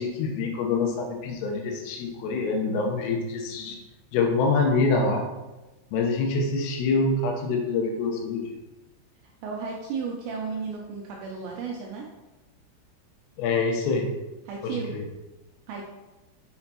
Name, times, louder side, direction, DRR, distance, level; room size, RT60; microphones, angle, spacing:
voice 1, 0.0-3.8 4.1-5.3 5.9-8.5 13.4-14.1 14.6-15.0, left 3 dB, 85° left, 2 dB, 3.6 m, -25 dB
voice 2, 9.2-12.1 14.5-14.9 15.7-15.8, right 5 dB, 90° right, -1 dB, 2.6 m, -34 dB
6.8 x 6.7 x 2.8 m, 1.1 s
omnidirectional pair, 5.9 m